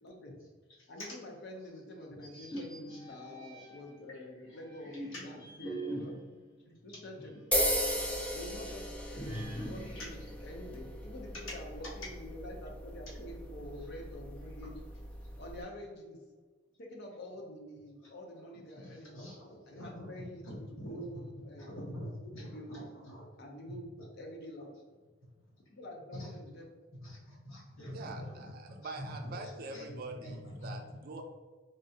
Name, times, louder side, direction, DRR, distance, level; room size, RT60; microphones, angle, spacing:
voice 1, 0.0-0.3 0.9-6.1 6.7-7.3 8.3-10.1 10.4-14.8 15.4-16.2 16.8-19.2 19.7-21.9 22.2-22.8 23.4-24.7 25.7-26.7, left 1 dB, 55° left, 0 dB, 0.7 m, -47 dB
sound 1, 2.2-4.0 4.6-7.6 8.0-8.1 9.2-11.2, right 1 dB, 20° left, 1.0 m, -43 dB
voice 2, 2.3-2.6 2.9-3.0 3.6-3.7 4.5-5.2 6.9-7.0 9.6-10.3 18.0-20.1 20.4-21.1 21.6-23.3 24.0-24.1 26.1-26.3 27.0-29.8 30.2-30.7, left 1 dB, 80° left, -4 dB, 1.1 m, -46 dB
sound 2, 7.5-15.6, equal, 5° left, 0.5 m, -37 dB
voice 3, 27.9-31.2, right 3 dB, 45° right, 4 dB, 0.5 m, -44 dB
3.7 x 3.3 x 2.7 m, 1.4 s
head